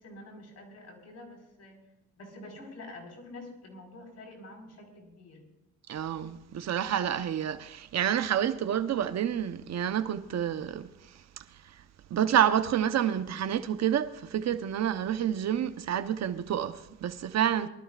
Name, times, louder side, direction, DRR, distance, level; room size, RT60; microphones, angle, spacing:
voice 1, 0.0-1.8 2.2-5.5, left 2 dB, 55° left, 4.9 m, -47 dB
voice 2, 5.9-10.9 12.1-17.7, right 10 dB, 60° right, 0.9 m, -28 dB
23.5 x 13.0 x 2.5 m
cardioid pair, 90°, 30 cm